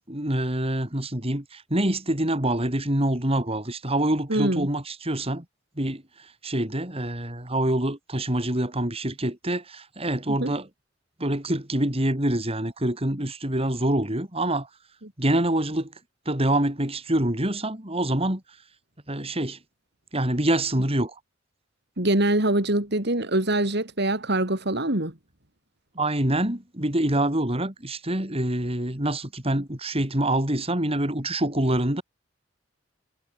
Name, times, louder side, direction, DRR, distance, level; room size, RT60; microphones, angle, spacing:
voice 1, 0.0-5.4 5.8-6.0 6.4-10.7 11.2-14.7 15.2-15.9 16.3-18.4 19.1-19.6 20.1-21.1 25.9-32.0, right 1 dB, 30° right, 4.4 m, -25 dB
voice 2, 4.3-4.7 10.4-10.5 15.0-15.1 22.0-25.1, right 1 dB, 60° right, 3.8 m, -24 dB
head